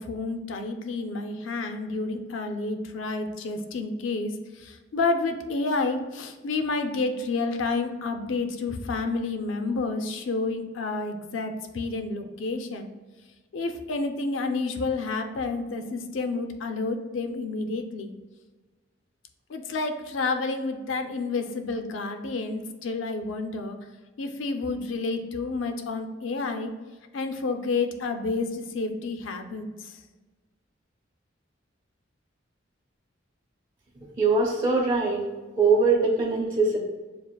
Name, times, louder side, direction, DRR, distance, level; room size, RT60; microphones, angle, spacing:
voice 1, 0.0-12.9 13.5-18.1 19.5-23.8 24.2-26.7 27.1-30.0, left 3 dB, 85° left, 6 dB, 0.5 m, -30 dB
voice 2, 34.2-35.2 35.6-36.8, right 3 dB, 25° right, -5 dB, 0.7 m, -22 dB
7.0 x 2.5 x 2.2 m, 1.3 s
head